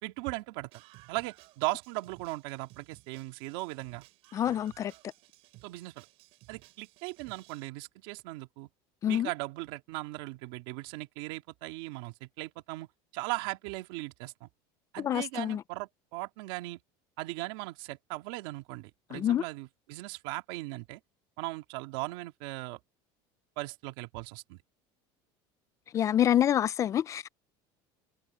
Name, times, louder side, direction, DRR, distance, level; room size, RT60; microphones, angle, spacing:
voice 1, 0.0-0.7 1.1-4.0 5.6-6.0 6.5-8.7 9.1-12.9 13.1-14.5 14.9-16.8 17.2-21.0 21.4-22.8 23.6-24.6, right 22 dB, 75° right, 2.5 m, -38 dB
Screaming, 0.7-7.7, right 20 dB, 60° right, 4.0 m, -57 dB
voice 2, 4.3-4.9 9.0-9.3 15.0-15.6 19.1-19.4 25.9-27.3, left 10 dB, 25° left, 0.4 m, -27 dB
cardioid pair, 155°, 12 cm